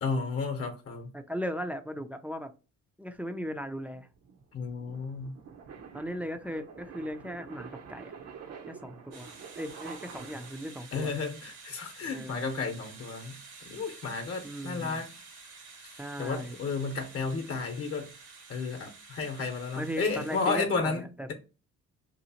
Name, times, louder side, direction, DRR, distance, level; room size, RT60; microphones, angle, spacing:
voice 1, 0.0-1.1 4.5-5.4 10.9-13.4 13.6-15.1 16.2-18.1 18.5-21.3, left 4 dB, 50° left, 0.8 m, -32 dB
voice 2, 1.1-2.5 3.0-4.1 5.9-8.1 8.7-11.1 12.1-12.5 14.4-15.0 16.0-16.5 19.8-21.3, equal, 5° right, 0.3 m, -37 dB
sound 1, 3.2-10.8, right 6 dB, 60° right, 0.6 m, -48 dB
sound 2, 9.1-20.5, right 4 dB, 80° right, 1.4 m, -50 dB
2.8 x 2.4 x 2.8 m
cardioid pair, 90°, 30 cm